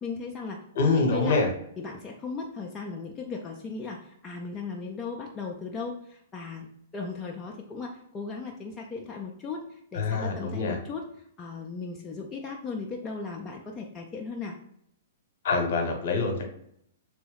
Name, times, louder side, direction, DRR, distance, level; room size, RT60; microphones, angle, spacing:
voice 1, 0.0-0.6 0.9-1.4 1.8-6.7 6.9-11.0 11.4-14.5, left 4 dB, 20° left, -1 dB, 0.4 m, -37 dB
voice 2, 0.7-1.5 9.9-10.8 15.4-16.5, left 3 dB, 55° left, 3 dB, 0.9 m, -25 dB
3.4 x 3.0 x 3.3 m, 0.71 s
figure-of-eight pair, 110°, 0 cm